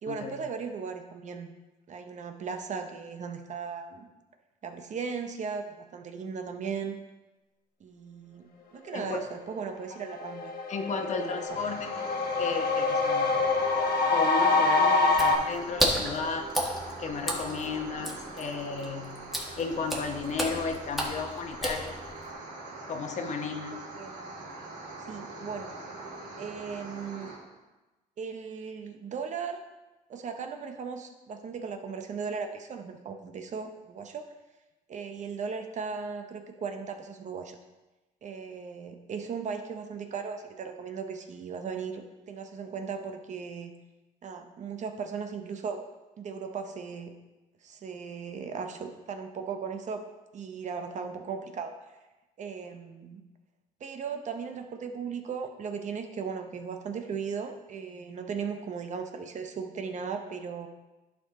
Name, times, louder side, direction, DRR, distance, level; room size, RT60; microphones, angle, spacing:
voice 1, 0.0-1.5 1.9-4.1 4.6-7.0 7.8-10.5 11.2-11.4 23.9-24.2 25.0-25.7 26.4-27.3 28.2-29.6 30.1-34.2 34.9-37.6 38.2-43.7 44.2-45.8 46.2-47.1 47.6-50.0 50.3-51.7 52.4-53.2 53.8-60.7, right 6 dB, 45° right, 6 dB, 0.8 m, -37 dB
voice 2, 8.9-9.3 10.7-11.9 12.4-13.4 14.1-16.5 17.0-19.2 19.6-21.9 22.9-23.8, left 5 dB, 45° left, 5 dB, 1.0 m, -34 dB
sound 1, 9.6-9.7 10.0-15.4, left 3 dB, 60° left, 1.3 m, -26 dB
sound 2, 11.5-27.4, right 2 dB, 65° right, 2.9 m, -43 dB
Water / Splash splatter, 15.1-22.3, equal, ahead, 1.4 m, -33 dB
11.0 x 4.7 x 3.7 m, 1.1 s
cardioid pair, 110°, 17 cm